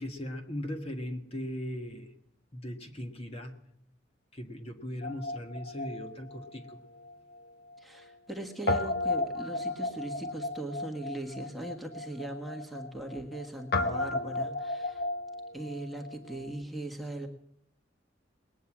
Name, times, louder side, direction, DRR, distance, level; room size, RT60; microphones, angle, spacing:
voice 1, 0.0-2.1 2.5-3.6 4.3-6.8, left 1 dB, 30° left, 4 dB, 1.5 m, -38 dB
Guitar, 5.0-7.4 7.7-7.8 8.7-16.5, left 2 dB, 55° left, 1.2 m, -34 dB
voice 2, 7.8-15.0 15.5-17.3, right 1 dB, ahead, 2 dB, 1.5 m, -39 dB
20.5 x 9.4 x 7.3 m, 0.74 s
head